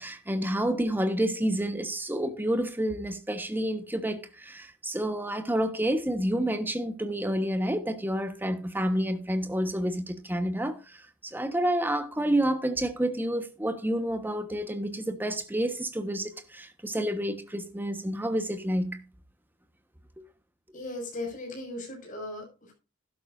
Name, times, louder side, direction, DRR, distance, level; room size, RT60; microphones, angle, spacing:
voice 1, 0.0-10.8 11.2-19.0, right 1 dB, 10° right, 1.3 m, -29 dB
voice 2, 20.7-22.7, left 2 dB, 40° left, 6.3 m, -37 dB
12.0 x 12.0 x 2.6 m
head